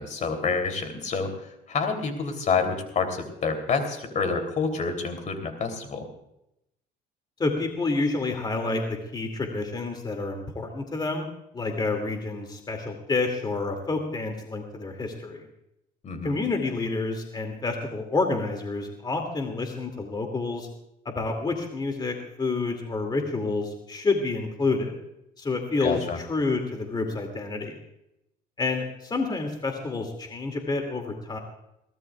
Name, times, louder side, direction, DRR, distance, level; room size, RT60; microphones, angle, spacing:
voice 1, 0.0-6.0 16.0-16.4 25.8-26.2, left 4 dB, 45° left, 6 dB, 3.2 m, -28 dB
voice 2, 7.4-11.3 11.5-15.5 16.2-20.7 21.0-24.9 25.4-27.8 28.6-31.4, left 3 dB, 25° left, 4 dB, 2.4 m, -29 dB
22.5 x 17.5 x 2.4 m, 0.83 s
cardioid pair, 110°, 17 cm